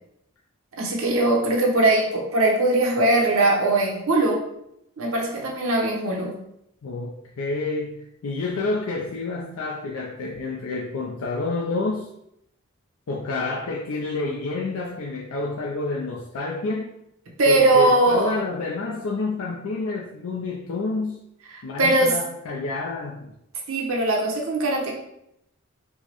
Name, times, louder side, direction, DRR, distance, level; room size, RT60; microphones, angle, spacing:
voice 1, 0.8-4.4 5.0-6.4 17.4-18.4 21.5-22.2 23.7-24.9, right 2 dB, 75° right, -1 dB, 0.8 m, -20 dB
voice 2, 6.8-12.1 13.1-16.9 17.5-21.2 21.6-23.3, left 3 dB, 90° left, -2 dB, 0.5 m, -29 dB
4.5 x 2.1 x 2.9 m, 0.79 s
head